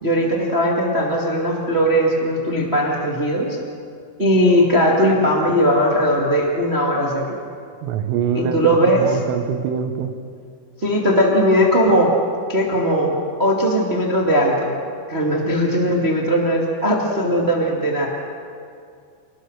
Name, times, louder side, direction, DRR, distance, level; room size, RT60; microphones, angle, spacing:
voice 1, 0.0-3.6 4.2-7.4 8.3-9.0 10.8-12.1 12.5-13.1 13.4-14.7 15.1-18.1, equal, 50° right, -2 dB, 0.7 m, -18 dB
voice 2, 7.8-10.1, right 7 dB, 80° right, 8 dB, 3.7 m, -24 dB
29.0 x 19.5 x 6.5 m, 2.3 s
omnidirectional pair, 5.9 m